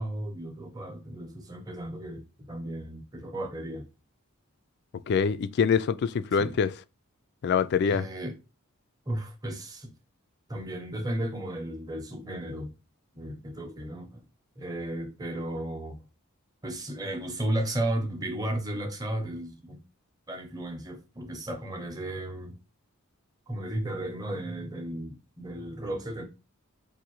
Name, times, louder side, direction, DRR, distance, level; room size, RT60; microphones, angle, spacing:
voice 1, 0.0-3.9 6.4-6.6 7.9-8.4 9.1-9.9 10.5-12.7 13.2-14.2 14.6-16.0 16.6-19.8 20.3-22.5 23.5-26.2, right 1 dB, 15° right, 0.8 m, -34 dB
voice 2, 5.1-6.7 7.4-8.1, left 6 dB, 50° left, 0.3 m, -24 dB
4.8 x 2.6 x 3.0 m
head